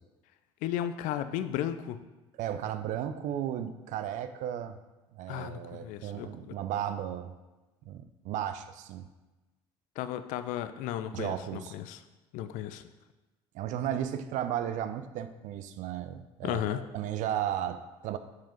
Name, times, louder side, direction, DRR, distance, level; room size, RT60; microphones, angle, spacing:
voice 1, 0.6-2.0 5.3-6.5 10.0-12.0 12.3-12.8 16.4-16.8, left 11 dB, 70° left, 11 dB, 0.4 m, -34 dB
voice 2, 2.4-4.8 5.1-7.3 7.9-9.1 11.1-11.7 13.5-18.2, right 10 dB, 65° right, 10 dB, 0.5 m, -34 dB
5.6 x 4.8 x 4.4 m, 1.1 s
hypercardioid pair, 60°, 14 cm